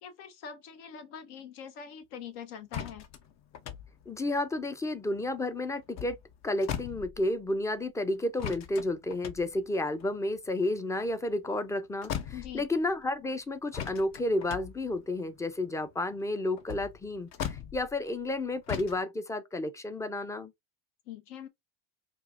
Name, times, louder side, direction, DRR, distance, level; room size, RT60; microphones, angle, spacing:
voice 1, 0.0-3.1 12.3-12.7 21.1-21.5, left 8 dB, 75° left, 1.1 m, -43 dB
sound 1, 2.7-5.4 5.8-7.6 8.4-11.7 12.0-13.0 13.7-18.3 18.7-19.0, left 9 dB, 45° left, 0.7 m, -40 dB
voice 2, 4.1-6.2 6.4-20.5, left 2 dB, 10° left, 0.4 m, -31 dB
4.3 x 2.4 x 2.5 m
supercardioid pair, 115°, 37 cm